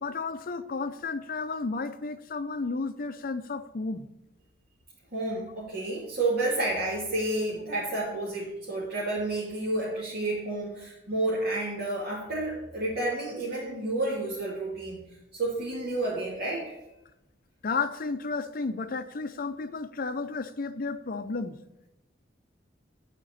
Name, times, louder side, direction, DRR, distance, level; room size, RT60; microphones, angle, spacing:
voice 1, 0.0-4.1 17.6-21.6, left 4 dB, 50° left, 10 dB, 0.6 m, -32 dB
voice 2, 5.1-15.0 15.3-16.8, right 2 dB, 55° right, -8 dB, 2.6 m, -30 dB
8.1 x 5.0 x 7.2 m, 0.93 s
head